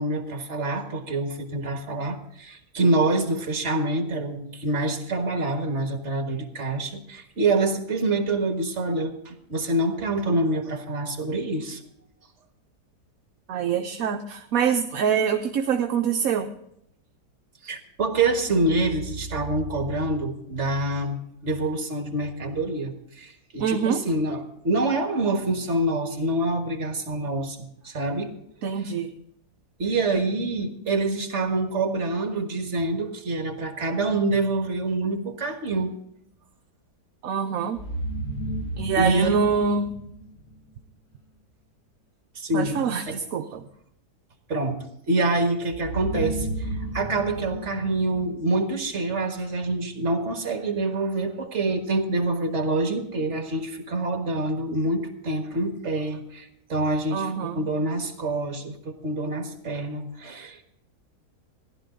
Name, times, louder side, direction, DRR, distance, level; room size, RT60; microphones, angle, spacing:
voice 1, 0.0-11.8 17.6-28.3 29.8-35.9 39.0-39.3 42.4-42.8 43.1-43.2 44.5-60.6, right 2 dB, 45° right, 5 dB, 1.8 m, -26 dB
voice 2, 13.5-16.5 23.6-24.0 28.6-29.2 37.2-37.8 38.8-39.9 42.5-43.6 57.1-57.7, right 6 dB, 65° right, 5 dB, 1.1 m, -25 dB
sound 1, 37.8-40.7 45.7-48.9, right 1 dB, 50° left, 2.3 m, -33 dB
15.0 x 11.5 x 3.8 m, 0.75 s
omnidirectional pair, 1.7 m